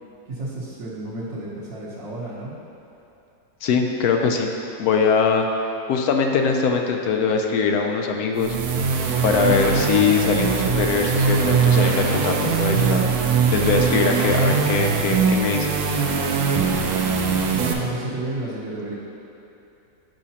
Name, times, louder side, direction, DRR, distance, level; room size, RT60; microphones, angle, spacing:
voice 1, 0.3-2.5 17.4-18.9, right 2 dB, 60° right, -9 dB, 1.3 m, -32 dB
voice 2, 3.6-4.5 4.8-5.5 5.9-8.5 9.2-13.0 13.5-15.7 17.0-17.2 17.6-17.7, left 5 dB, 75° left, 3 dB, 1.0 m, -22 dB
sound 1, 8.4-17.7, right 5 dB, 85° right, 1.1 m, -21 dB
9.1 x 4.9 x 2.8 m, 2.8 s
omnidirectional pair, 1.6 m